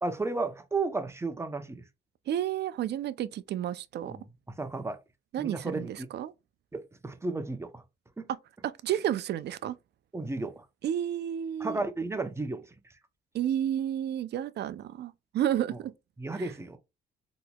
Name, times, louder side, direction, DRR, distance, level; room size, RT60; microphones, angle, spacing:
voice 1, 0.0-1.8 4.1-4.2 4.6-5.0 5.4-6.1 6.7-7.8 8.2-8.3 10.1-10.6 11.6-12.7 16.2-16.8, right 3 dB, 15° right, 0.6 m, -33 dB
voice 2, 2.3-4.1 5.3-6.3 8.6-9.7 10.8-11.8 13.3-15.9 16.3-16.4, right 11 dB, 60° right, 0.4 m, -31 dB
3.8 x 2.9 x 2.2 m
cardioid pair, 90°, 20 cm